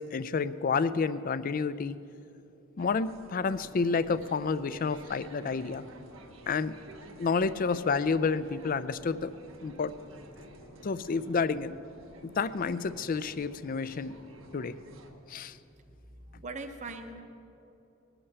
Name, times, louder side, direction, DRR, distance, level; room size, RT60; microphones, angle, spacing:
voice 1, 0.0-2.0 2.8-5.8 6.5-6.8 7.2-9.3 9.6-9.9 10.8-11.8 12.2-14.2 14.5-14.7 15.3-15.6, left 5 dB, 40° left, 15 dB, 0.4 m, -30 dB
sound 1, 2.8-15.1, right 2 dB, 70° right, 1.2 m, -55 dB
sound 2, 3.3-15.2, equal, 85° left, 2.5 m, -53 dB
voice 2, 16.1-17.2, right 3 dB, 35° right, 6 dB, 0.8 m, -41 dB
20.0 x 8.9 x 6.7 m, 2.9 s
head